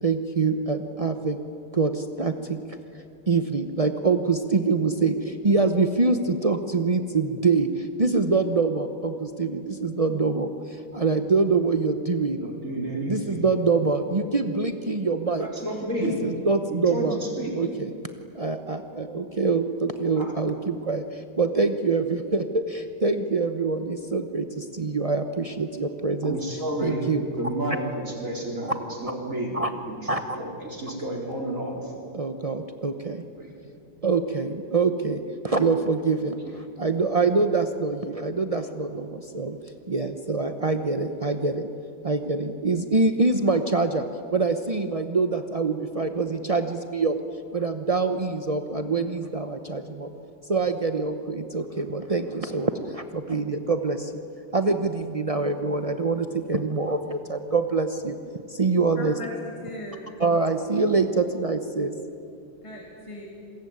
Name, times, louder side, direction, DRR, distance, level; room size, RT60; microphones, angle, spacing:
voice 1, 0.0-1.4 1.7-2.6 2.9-12.4 13.1-15.5 16.0-17.2 17.5-17.9 18.3-26.4 26.8-27.2 29.5-29.7 30.1-30.4 32.1-33.2 34.0-41.7 42.0-44.0 44.3-47.2 47.5-50.1 50.5-54.2 54.5-58.2 58.5-59.1 60.2-61.9, right 3 dB, 65° right, 7 dB, 0.3 m, -25 dB
voice 2, 12.4-13.5 15.4-16.2 16.7-17.6 20.2-20.3 26.2-27.1 27.4-28.7 29.0-30.0 30.3-31.9 33.4-33.5 36.4-36.5, right 1 dB, 35° right, -1 dB, 4.6 m, -31 dB
voice 3, 58.9-60.1 62.6-63.3, left 1 dB, 15° left, -2 dB, 3.1 m, -38 dB
27.5 x 21.0 x 9.5 m, 2.6 s
omnidirectional pair, 2.3 m